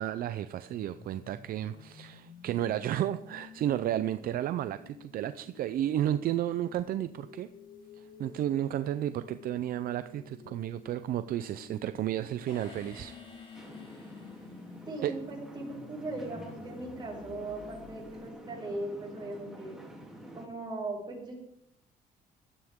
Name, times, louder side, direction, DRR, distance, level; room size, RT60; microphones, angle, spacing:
voice 1, 0.0-7.5 8.0-13.1 15.0-15.1, right 12 dB, 60° right, 12 dB, 0.6 m, -32 dB
sound 1, 0.7-18.3, left 6 dB, 55° left, 1.8 m, -51 dB
sound 2, 12.5-15.3, left 2 dB, 30° left, 5.2 m, -54 dB
sound 3, 13.5-20.5, equal, 5° right, 3.0 m, -48 dB
voice 2, 14.9-19.8 20.3-21.3, right 2 dB, 25° right, -3 dB, 7.0 m, -39 dB
17.0 x 13.0 x 3.7 m, 0.77 s
cardioid pair, 110°, 17 cm